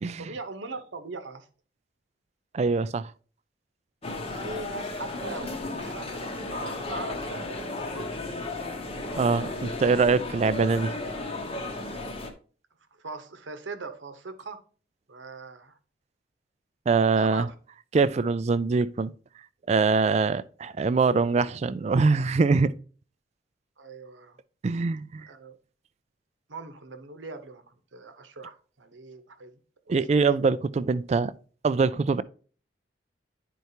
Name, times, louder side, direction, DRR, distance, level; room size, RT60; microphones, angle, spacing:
voice 1, 0.2-1.5 4.4-8.2 13.0-14.6 15.1-15.8 17.2-17.5 23.8-24.4 25.3-25.6 26.5-29.6 29.9-30.0, right 3 dB, 90° right, 0.9 m, -40 dB
voice 2, 2.5-3.1 9.2-10.9 16.9-17.5 17.9-19.1 19.7-22.7 24.6-25.3 29.9-31.3 31.6-32.2, right 4 dB, 35° right, 0.3 m, -23 dB
sound 1, 4.0-12.3, left 2 dB, 30° left, 0.9 m, -34 dB
10.5 x 4.5 x 2.8 m
head